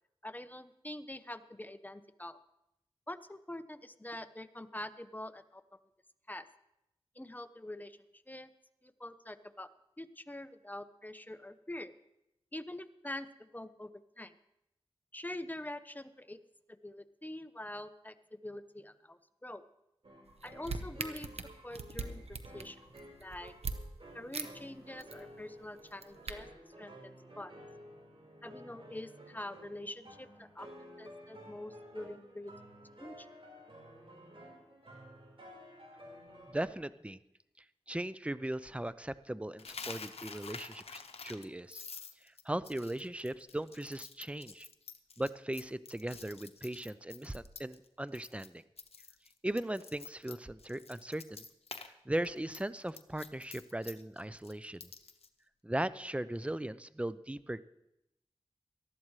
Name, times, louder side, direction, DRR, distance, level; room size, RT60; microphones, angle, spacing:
voice 1, 0.2-2.4 3.1-5.6 6.3-6.5 7.2-8.5 8.8-9.7 10.0-11.9 12.5-13.9 14.2-14.3 15.1-16.4 16.7-19.6 20.4-21.3 21.6-22.8 23.2-23.5 24.1-26.5 26.8-27.5 28.4-32.5 33.0-33.3, left 1 dB, 15° left, 11 dB, 0.8 m, -45 dB
sound 1, 20.0-36.6, equal, 65° right, 4.4 m, -53 dB
sound 2, 20.3-23.8 24.3-24.5 24.8-25.2 25.8-26.3, right 4 dB, 85° right, 0.9 m, -40 dB
voice 2, 36.5-37.2 37.9-41.8 42.2-44.7 45.2-48.6 49.4-51.4 51.8-54.9 55.6-57.6, right 1 dB, 10° right, 15 dB, 0.5 m, -38 dB
Coin (dropping), 39.6-47.9 48.1-48.5 48.8-51.9 52.2-55.3, left 5 dB, 90° left, 0.8 m, -48 dB
18.5 x 13.5 x 3.2 m, 0.85 s
cardioid pair, 45°, 10 cm